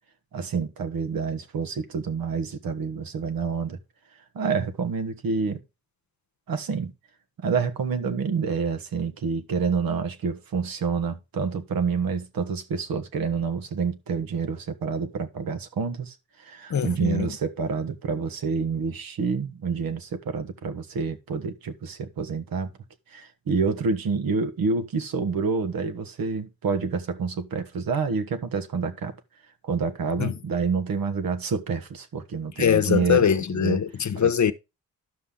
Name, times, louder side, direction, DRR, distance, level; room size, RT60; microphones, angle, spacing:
voice 1, 0.3-3.8 4.3-5.6 6.5-6.9 7.4-22.7 23.1-29.1 29.6-33.2 33.6-33.8 34.1-34.3, right 5 dB, 70° right, 1.4 m, -28 dB
voice 2, 16.7-17.3 30.2-30.4 32.6-34.5, left 8 dB, 50° left, 1.0 m, -22 dB
12.0 x 5.7 x 3.7 m
cardioid pair, 60°, 36 cm